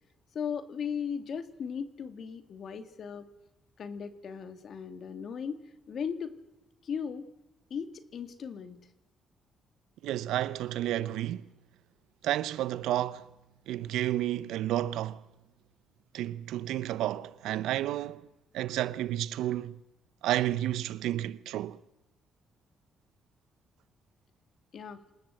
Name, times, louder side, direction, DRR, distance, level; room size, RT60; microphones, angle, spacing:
voice 1, 0.3-3.3 3.8-5.6 5.9-6.3 6.8-7.3 7.7-8.8 24.7-25.0, left 7 dB, 60° left, 2.2 m, -37 dB
voice 2, 10.0-11.5 12.2-13.3 13.7-15.2 16.1-18.3 18.5-19.8 20.2-21.8, right 13 dB, 85° right, 0.7 m, -31 dB
26.0 x 19.5 x 7.8 m
cardioid pair, 90°, 0 cm